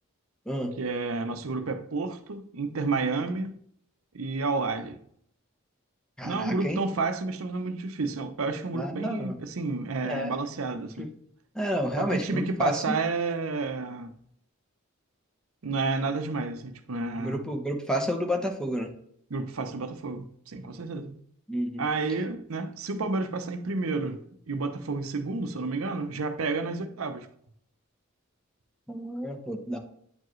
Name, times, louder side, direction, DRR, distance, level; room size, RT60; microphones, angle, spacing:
voice 1, 0.8-3.6 4.1-5.0 6.2-11.1 12.0-14.1 15.6-17.4 19.3-21.1 21.8-27.3, right 3 dB, 85° right, 0.7 m, -30 dB
voice 2, 6.2-6.8 8.7-9.4 10.0-10.3 11.5-12.9 17.2-18.9 21.5-21.8 28.9-29.8, equal, 5° left, 1.0 m, -30 dB
9.5 x 4.6 x 3.1 m
head